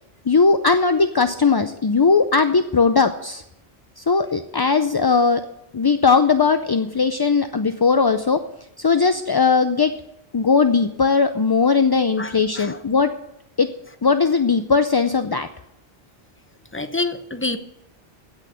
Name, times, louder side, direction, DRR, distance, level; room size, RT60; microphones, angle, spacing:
voice 1, 0.3-3.4 4.0-5.4 5.7-8.4 8.8-9.9 10.3-13.1 13.6-13.7 14.0-15.5, left 4 dB, 35° left, 8 dB, 0.4 m, -18 dB
voice 2, 12.2-12.8 16.7-17.6, left 3 dB, 15° left, 8 dB, 0.9 m, -27 dB
16.0 x 6.4 x 7.8 m, 0.83 s
omnidirectional pair, 1.1 m